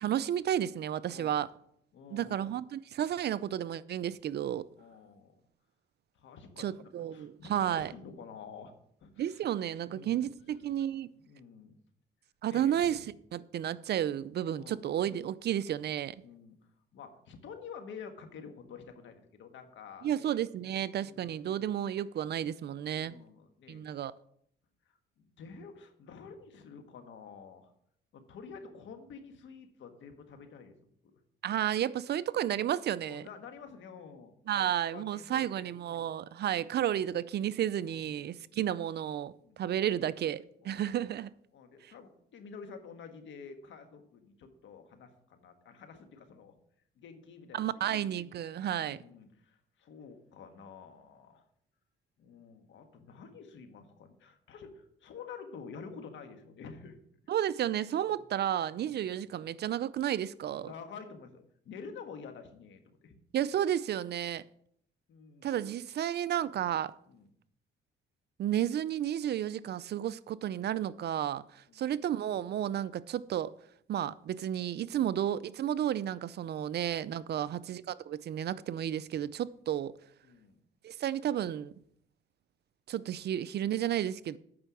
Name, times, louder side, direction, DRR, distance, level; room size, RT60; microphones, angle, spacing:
voice 1, 0.0-1.5 2.1-4.6 6.6-7.9 9.2-11.1 12.4-13.1 13.3-16.1 20.0-23.1 23.7-24.1 31.4-33.3 34.5-41.3 41.8-41.9 47.5-49.0 57.3-60.7 63.3-64.4 65.4-66.9 68.4-73.5 73.9-79.9 80.8-81.7 82.9-84.4, right 10 dB, 55° right, 0.5 m, -32 dB
voice 2, 1.9-2.5 4.8-5.4 6.1-8.7 9.0-9.4 9.8-10.2 11.1-11.8 12.5-13.0 14.6-15.0 16.2-16.5 16.9-20.4 20.9-21.3 22.9-23.9 24.9-27.7 28.1-30.7 31.0-31.2 33.0-36.1 37.8-38.5 39.4-39.9 40.6-41.0 41.5-46.5 47.0-47.6 47.8-48.4 48.7-51.4 52.2-57.0 58.1-58.2 58.9-59.1 60.5-63.2 65.1-65.6 67.1-67.3 71.7-71.8 77.3-77.7 80.2-80.6, left 5 dB, 75° left, 1.5 m, -49 dB
8.7 x 5.6 x 6.2 m
cardioid pair, 90°, 20 cm